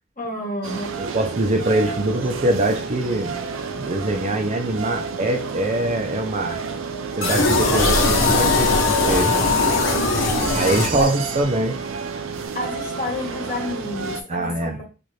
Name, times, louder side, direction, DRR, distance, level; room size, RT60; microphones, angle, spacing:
voice 1, 0.2-1.0 10.9-11.8 12.5-14.9, left 2 dB, 45° left, 1.2 m, -32 dB
sound 1, 0.6-14.2, right 5 dB, 90° right, 0.5 m, -31 dB
voice 2, 1.0-3.3 3.8-6.6 7.2-9.3 10.5-11.8 14.3-14.8, right 1 dB, 35° right, 0.6 m, -23 dB
sound 2, 7.2-11.4, left 3 dB, 85° left, 1.0 m, -19 dB
4.1 x 2.5 x 3.2 m
head